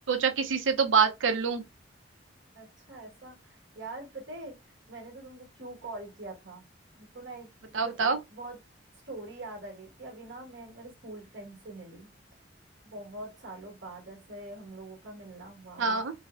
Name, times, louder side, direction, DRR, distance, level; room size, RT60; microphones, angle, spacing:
voice 1, 0.1-1.6 7.7-8.2 15.8-16.1, right 5 dB, 85° right, 0.6 m, -25 dB
voice 2, 2.5-6.7 7.0-8.6 8.9-12.1 12.8-16.0, right 2 dB, 70° right, 1.4 m, -44 dB
3.9 x 2.0 x 2.4 m
head